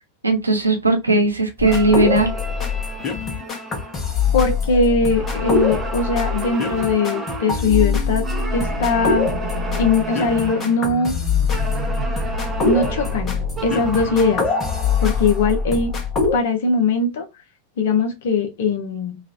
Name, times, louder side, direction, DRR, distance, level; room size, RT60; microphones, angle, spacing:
voice 1, 0.2-2.3, right 2 dB, 80° right, 0.7 m, -17 dB
sound 1, 1.6-16.4, left 5 dB, 25° left, 0.8 m, -23 dB
sound 2, 1.6-4.7 5.1-7.7 8.2-10.9 11.5-15.7, right 2 dB, 20° right, 0.6 m, -33 dB
sound 3, 3.0-14.4, right 7 dB, 45° right, 0.8 m, -35 dB
voice 2, 4.3-9.3 9.8-11.1 12.6-13.4 13.6-14.4 15.0-15.9 16.3-17.3 17.8-19.2, left 4 dB, 55° left, 0.6 m, -20 dB
2.9 x 2.3 x 2.6 m
figure-of-eight pair, 90°, 0 cm